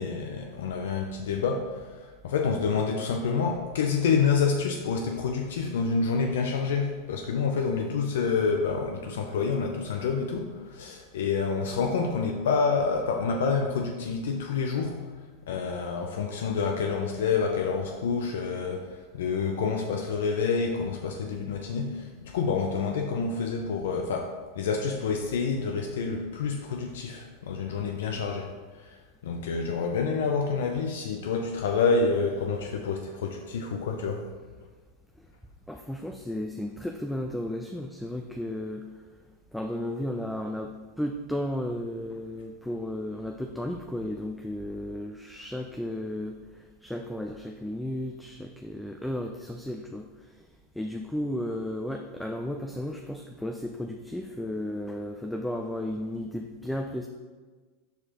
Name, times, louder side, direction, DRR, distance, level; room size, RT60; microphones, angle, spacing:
voice 1, 0.0-15.1 15.4-34.3, left 5 dB, 80° left, 3 dB, 0.5 m, -28 dB
voice 2, 35.7-38.8 39.5-46.4 46.8-50.1 50.8-57.1, left 1 dB, 5° left, 3 dB, 0.4 m, -34 dB
6.5 x 4.9 x 2.9 m, 1.4 s
hypercardioid pair, 115°, 0 cm